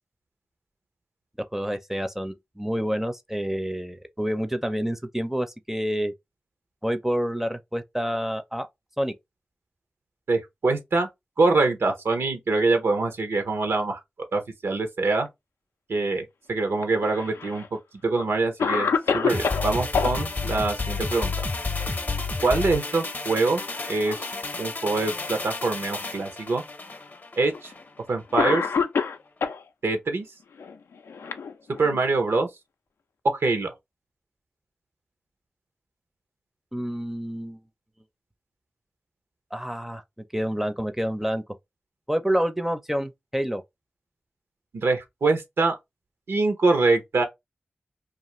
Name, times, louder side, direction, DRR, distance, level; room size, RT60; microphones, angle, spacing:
voice 1, 1.5-6.1 6.8-8.7 9.0-9.1 36.7-37.6 39.5-40.0 40.3-41.4 42.1-43.6, equal, 5° right, 0.5 m, -28 dB
voice 2, 10.3-11.1 11.4-14.0 14.3-15.3 15.9-17.6 18.0-21.4 22.4-23.6 23.9-24.2 24.6-26.6 27.4-27.7 28.1-28.7 29.8-30.3 31.8-32.5 33.2-33.7 44.7-45.8 46.3-47.2, right 3 dB, 80° right, 0.7 m, -24 dB
Cough, 16.8-17.7 18.2-18.3 18.6-20.1 22.0-22.4 22.8-22.9 23.7-24.4 25.2-25.3 26.3-26.4 27.5-27.7 28.4-29.6 30.6-32.0, left 5 dB, 90° left, 0.3 m, -27 dB
sound 1, 19.3-27.9 28.2-28.3, left 3 dB, 45° left, 0.6 m, -31 dB
2.4 x 2.4 x 2.9 m
cardioid pair, 45°, 4 cm